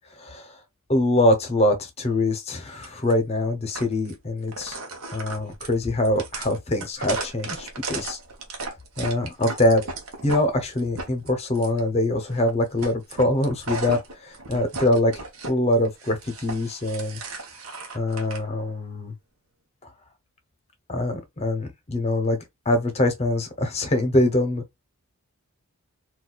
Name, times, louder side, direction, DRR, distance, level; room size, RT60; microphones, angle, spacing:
voice 1, 0.2-0.6 0.9-4.8 5.1-8.2 9.0-9.8 10.2-15.1 15.4-17.2 17.9-19.1 20.9-22.4 22.7-24.8, left 1 dB, 30° left, 0.7 m, -24 dB
sound 1, 2.8-3.1 3.7-4.1 4.5-10.4 10.8-11.8 12.3-12.5 12.8-15.5 15.8-18.4, right 3 dB, 70° right, 0.8 m, -35 dB
4.0 x 2.3 x 2.3 m
head